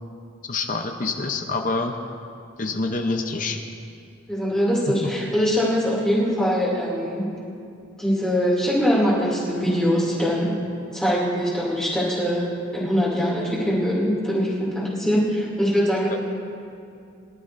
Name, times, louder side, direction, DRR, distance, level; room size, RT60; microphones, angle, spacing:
voice 1, 0.5-2.0 2.6-3.6 5.0-5.1, left 3 dB, 40° left, 5 dB, 0.7 m, -26 dB
voice 2, 4.3-7.3 8.0-10.5 10.9-16.2, equal, 5° left, -7 dB, 2.6 m, -22 dB
23.5 x 12.0 x 2.6 m, 2.5 s
head